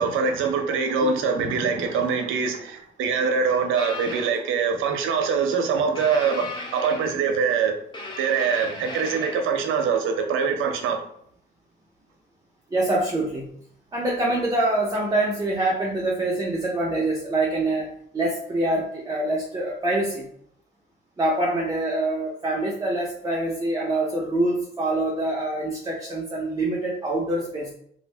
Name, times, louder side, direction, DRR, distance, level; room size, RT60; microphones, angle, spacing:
voice 1, 0.0-7.7 8.2-11.0, right 5 dB, 90° right, 0.6 m, -24 dB
sound 1, 3.8-4.4 5.9-7.4 7.9-9.5, left 3 dB, 25° left, 0.9 m, -36 dB
voice 2, 12.7-13.5 13.9-20.3 21.2-27.7, right 2 dB, 20° right, 0.6 m, -25 dB
2.6 x 2.5 x 3.3 m
cardioid pair, 90°, 20 cm